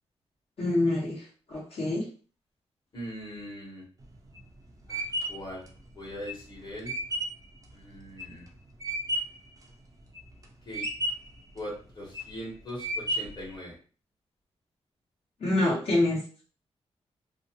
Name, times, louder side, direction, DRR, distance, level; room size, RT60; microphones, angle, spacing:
voice 1, 0.6-1.2 1.5-2.0 15.4-16.2, left 2 dB, 60° left, -6 dB, 1.0 m, -26 dB
voice 2, 2.9-3.8 4.9-5.0 5.3-5.6 6.0-6.9 7.7-8.5 10.6-10.8 11.5-13.7, equal, 40° left, -4 dB, 1.1 m, -40 dB
sound 1, 4.0-9.5 9.9-10.4 10.7-11.4 11.9-12.4 12.8-13.5, right 1 dB, 30° right, 0.5 m, -33 dB
2.7 x 2.1 x 2.8 m, 0.40 s
wide cardioid pair, 120°, 11 cm